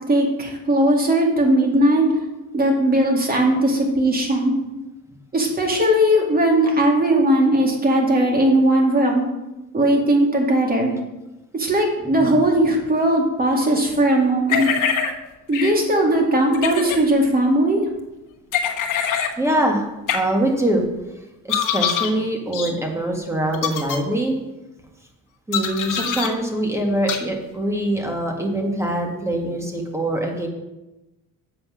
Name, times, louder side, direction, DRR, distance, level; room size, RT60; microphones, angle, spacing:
voice 1, 0.1-2.0 2.5-4.5 5.3-9.2 9.7-10.9 11.5-14.7 15.5-17.8, right 1 dB, 25° right, 0 dB, 2.1 m, -18 dB
sound 1, 14.5-15.1 15.5-15.7 16.5-17.0 18.5-19.3 20.1-20.2 21.5-22.1 22.5-22.7 23.5-24.0 25.5-26.3 27.1-27.2, left 8 dB, 60° left, 1.1 m, -23 dB
voice 2, 19.4-19.9 20.1-20.8 21.4-24.3 25.5-30.5, right 1 dB, 10° right, 1 dB, 1.6 m, -23 dB
7.6 x 5.9 x 6.2 m, 1.0 s
cardioid pair, 130°, 35 cm